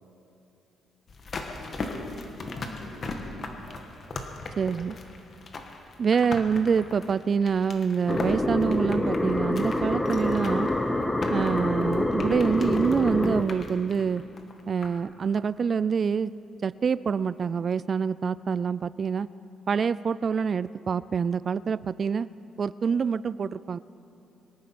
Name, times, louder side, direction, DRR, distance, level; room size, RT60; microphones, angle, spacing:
sound 1, 1.1-15.1 15.4-15.5, left 3 dB, 45° left, 1.6 m, -39 dB
voice 1, 1.5-3.8, left 1 dB, 65° left, -2 dB, 3.9 m, -45 dB
voice 2, 4.6-5.0 6.0-10.7 11.3-14.2 14.7-16.3 16.6-19.3 19.7-22.3 22.6-23.8, right 6 dB, 45° right, 18 dB, 0.3 m, -26 dB
sound 2, 8.1-13.4, left 1 dB, 15° left, 0.9 m, -26 dB
24.0 x 9.5 x 6.0 m, 3.0 s
cardioid pair, 90°, 0 cm